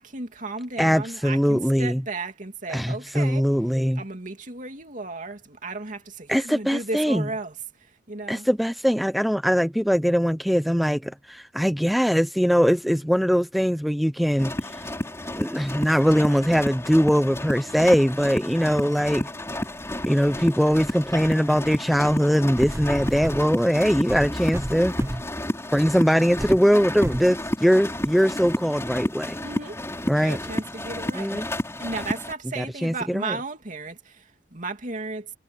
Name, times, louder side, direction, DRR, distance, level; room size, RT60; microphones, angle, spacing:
voice 1, 0.0-3.5 4.0-8.5 29.4-29.8 30.1-31.5 31.8-35.3, right 3 dB, 45° right, 2.8 m, -34 dB
voice 2, 0.8-2.0 2.7-4.0 6.3-7.2 8.3-14.8 15.4-19.3 20.1-24.9 25.7-29.4 30.1-30.4 31.1-31.5 32.6-33.4, equal, ahead, 0.6 m, -21 dB
sound 1, 14.4-32.3, left 1 dB, 15° left, 4.2 m, -31 dB
sound 2, 22.6-23.5 24.1-25.4 25.9-26.0 26.4-26.6 27.0-27.3 28.0-28.1, right 1 dB, 15° right, 0.9 m, -31 dB
head